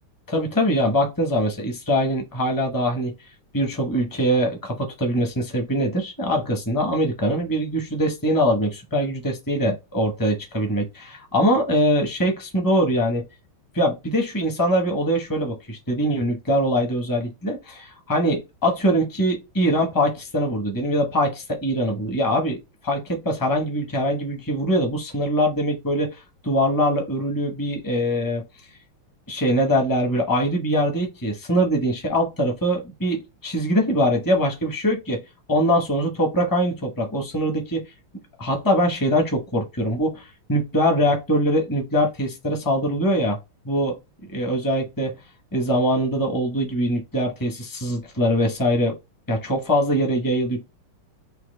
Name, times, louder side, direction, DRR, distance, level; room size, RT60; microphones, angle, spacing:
voice 1, 0.3-3.1 3.5-13.2 13.7-22.6 22.8-28.4 29.3-35.2 35.5-37.9 38.4-43.4 43.6-43.9 44.3-45.1 45.5-48.9 49.3-50.6, equal, 20° left, 0.5 m, -23 dB
5.8 x 2.3 x 3.3 m
omnidirectional pair, 2.4 m